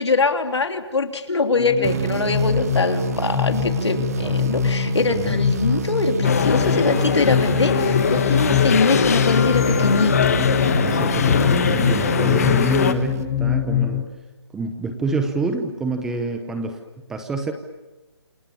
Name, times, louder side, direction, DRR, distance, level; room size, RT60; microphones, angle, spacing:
voice 1, 0.0-10.1 10.5-10.7, left 4 dB, 80° left, 6 dB, 3.4 m, -22 dB
sound 1, 1.5-14.0, left 9 dB, 20° left, 5.3 m, -24 dB
sound 2, 1.8-13.6, right 7 dB, 35° right, 0.9 m, -28 dB
sound 3, 6.2-12.9, left 7 dB, 35° left, 1.3 m, -22 dB
voice 2, 10.8-14.1 14.5-16.8 17.1-17.5, right 3 dB, 5° right, 6 dB, 0.9 m, -27 dB
28.0 x 27.5 x 7.2 m, 1.1 s
hypercardioid pair, 170°, 14 cm